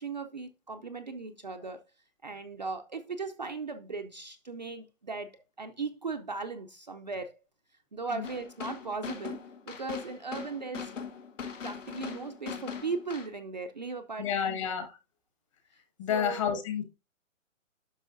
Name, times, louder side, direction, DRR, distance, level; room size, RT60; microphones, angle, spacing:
voice 1, 0.0-1.8 2.2-7.3 7.9-9.4 9.7-10.9 11.6-14.6 16.1-16.5, right 4 dB, 35° right, 0.5 m, -37 dB
sound 1, 8.2-13.3, left 6 dB, 70° left, 2.1 m, -40 dB
voice 2, 14.2-15.0 16.0-16.8, left 8 dB, 25° left, 1.5 m, -30 dB
10.0 x 6.2 x 2.6 m
hypercardioid pair, 170°, 39 cm